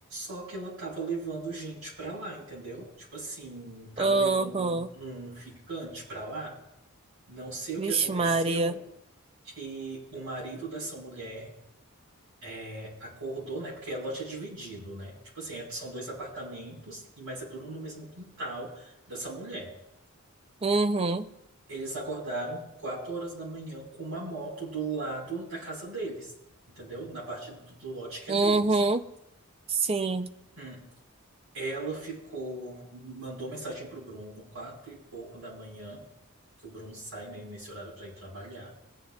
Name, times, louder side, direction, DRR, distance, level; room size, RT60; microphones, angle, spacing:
voice 1, 0.1-6.6 7.3-8.8 9.5-11.5 12.4-19.7 21.7-26.3 26.7-28.7 30.6-30.9 31.5-36.1 36.6-38.7, right 2 dB, 75° right, -4 dB, 4.5 m, -38 dB
voice 2, 4.0-4.9 7.8-8.7 20.6-21.3 28.3-29.0 29.7-30.3, right 3 dB, 25° right, 9 dB, 0.4 m, -25 dB
21.5 x 8.5 x 2.3 m, 0.85 s
head